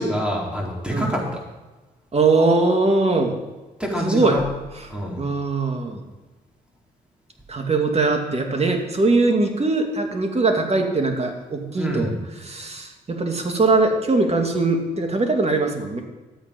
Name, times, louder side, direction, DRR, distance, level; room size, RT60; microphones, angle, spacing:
voice 1, 0.0-1.4 3.8-4.4 4.9-5.2 11.8-12.2, equal, 5° right, -2 dB, 4.3 m, -26 dB
voice 2, 2.1-3.4 4.0-4.4 5.2-6.0 7.5-12.1 12.4-16.0, right 3 dB, 35° right, 4 dB, 2.6 m, -21 dB
13.0 x 8.4 x 5.4 m, 1.2 s
hypercardioid pair, 50°, 19 cm